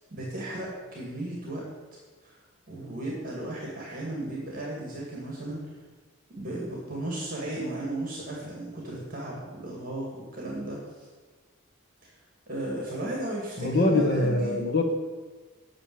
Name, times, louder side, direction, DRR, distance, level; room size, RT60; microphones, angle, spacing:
voice 1, 0.1-1.7 2.2-2.4 2.7-5.8 6.3-11.1 12.0-12.1 12.5-14.6, right 1 dB, 45° right, -3 dB, 2.0 m, -35 dB
voice 2, 13.6-14.8, left 2 dB, 50° left, 2 dB, 1.4 m, -23 dB
8.9 x 6.1 x 7.7 m, 1.3 s
head